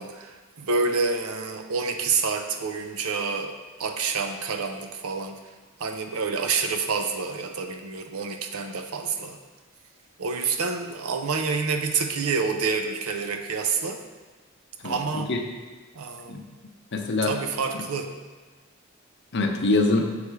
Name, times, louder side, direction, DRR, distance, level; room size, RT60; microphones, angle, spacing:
voice 1, 0.0-3.5 3.8-5.4 5.8-9.4 10.2-14.0 14.8-15.3 15.9-16.4 17.3-18.1, right 4 dB, 90° right, 5 dB, 0.6 m, -28 dB
voice 2, 14.8-15.4 16.3-16.4 16.9-17.4 19.3-20.2, left 2 dB, 55° left, 3 dB, 0.6 m, -24 dB
6.7 x 3.3 x 4.6 m, 1.4 s
head